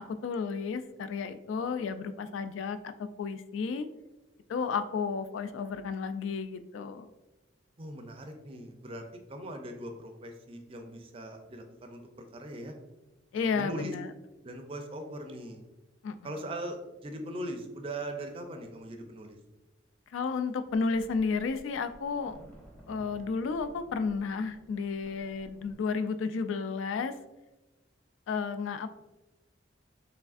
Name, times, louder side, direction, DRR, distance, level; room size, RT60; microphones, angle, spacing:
voice 1, 0.0-3.9 4.5-7.1 13.3-14.1 16.0-16.3 20.1-22.4 22.9-27.1 28.3-28.9, left 5 dB, 80° left, 11 dB, 0.3 m, -32 dB
voice 2, 7.8-12.0 12.3-12.7 13.3-13.9 14.4-15.6 16.2-19.4, right 1 dB, 30° right, 5 dB, 0.4 m, -40 dB
sound 1, 20.7-25.7, equal, 5° left, 0.7 m, -55 dB
4.7 x 3.3 x 2.5 m, 1.0 s
head